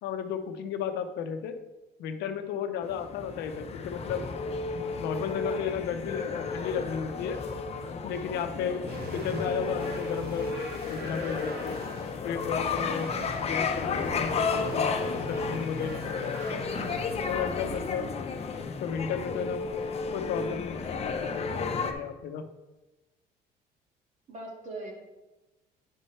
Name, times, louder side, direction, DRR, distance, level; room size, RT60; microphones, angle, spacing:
voice 1, 0.0-1.5 2.0-4.2 4.7-7.4 8.0-8.9 9.1-11.9 12.2-13.1 13.4-14.9 15.1-16.6 17.3-18.0 18.8-19.7 20.1-22.5, left 7 dB, 85° left, 8 dB, 0.7 m, -34 dB
sound 1, 2.8-21.9, left 4 dB, 40° left, 0.7 m, -32 dB
sound 2, 8.9-17.2, right 3 dB, 70° right, 1.1 m, -43 dB
voice 2, 17.6-18.0 24.3-24.9, right 2 dB, 45° right, -1 dB, 2.2 m, -41 dB
9.9 x 5.5 x 3.2 m, 1.1 s
cardioid pair, 110°, 17 cm